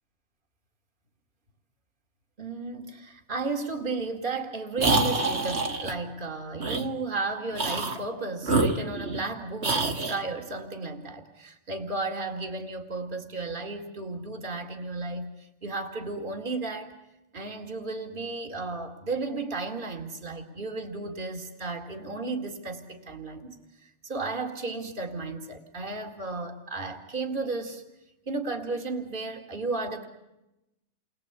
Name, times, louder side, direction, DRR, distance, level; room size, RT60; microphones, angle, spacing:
voice 1, 2.4-16.9 17.3-27.8 28.3-30.1, right 3 dB, 45° right, 3 dB, 2.5 m, -34 dB
sound 1, 4.8-5.9 6.6-6.9 7.5-8.0 8.4-9.3 9.6-10.2, right 3 dB, 65° right, 2.1 m, -26 dB
30.0 x 22.0 x 8.3 m, 0.95 s
omnidirectional pair, 1.2 m